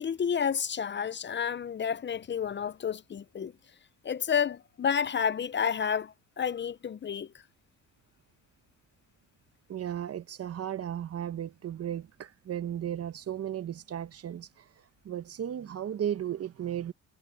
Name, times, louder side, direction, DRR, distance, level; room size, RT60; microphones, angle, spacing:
voice 1, 0.0-3.5 4.0-7.3, left 7 dB, 35° left, 0.7 m, -30 dB
voice 2, 9.7-16.9, right 10 dB, 55° right, 1.1 m, -35 dB
cardioid pair, 90°, 30 cm